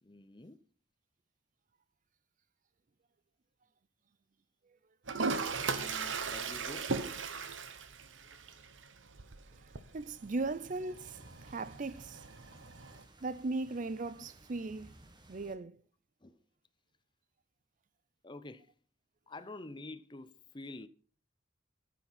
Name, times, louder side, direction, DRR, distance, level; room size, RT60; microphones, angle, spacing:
voice 1, 0.0-0.6 5.6-6.9 16.2-16.3 18.2-18.7 19.3-20.9, left 2 dB, 25° left, 0.7 m, -48 dB
Toilet flush, 5.1-13.0, right 4 dB, 80° right, 1.1 m, -39 dB
voice 2, 9.6-12.2 13.2-15.0 15.3-15.8, right 3 dB, 40° right, 0.5 m, -38 dB
sound 1, 10.9-15.5, right 1 dB, 25° right, 1.6 m, -58 dB
13.5 x 7.2 x 5.8 m
head